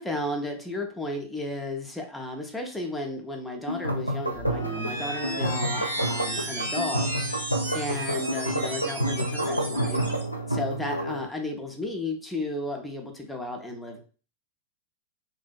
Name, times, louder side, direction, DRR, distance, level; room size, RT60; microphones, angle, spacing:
voice 1, 0.0-7.1 7.7-10.0 10.5-14.0, left 1 dB, 5° left, 1 dB, 0.5 m, -33 dB
sound 1, 3.7-11.3, right 1 dB, 85° left, 0.3 m, -29 dB
sound 2, 4.3-10.2, right 1 dB, 80° right, 0.9 m, -34 dB
2.5 x 2.1 x 2.3 m, 0.38 s
figure-of-eight pair, 90°, 0 cm